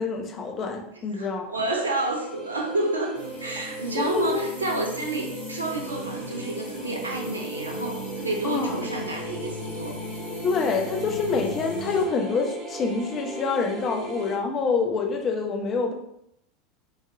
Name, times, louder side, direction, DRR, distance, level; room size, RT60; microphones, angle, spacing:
voice 1, 0.0-1.6 4.0-4.4 8.4-8.7 10.4-15.9, left 4 dB, 35° left, 2 dB, 0.5 m, -26 dB
voice 2, 1.1-10.0, right 2 dB, 80° right, 1 dB, 0.5 m, -30 dB
sound 1, 1.7-14.4, right 2 dB, 10° right, 0.9 m, -38 dB
sound 2, 3.1-12.1, left 1 dB, 75° left, 0.8 m, -38 dB
3.5 x 2.0 x 2.6 m, 0.74 s
figure-of-eight pair, 80°, 0 cm